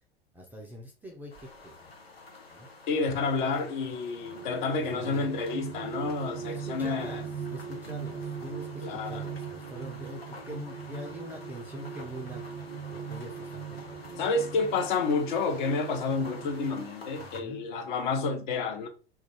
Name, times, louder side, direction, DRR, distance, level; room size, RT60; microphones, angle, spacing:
voice 1, 0.3-1.9 2.5-2.7 3.4-3.6 4.9-5.3 6.4-12.5 12.8-14.2 17.2-17.7, equal, 5° right, 0.3 m, -44 dB
sound 1, 1.3-17.4, left 3 dB, 90° left, 0.6 m, -49 dB
voice 2, 2.9-7.2 8.8-9.2 14.2-18.9, left 4 dB, 55° left, 0.7 m, -29 dB
sound 2, 4.0-16.8, right 7 dB, 70° right, 0.4 m, -40 dB
2.3 x 2.2 x 3.0 m
figure-of-eight pair, 85°, 30 cm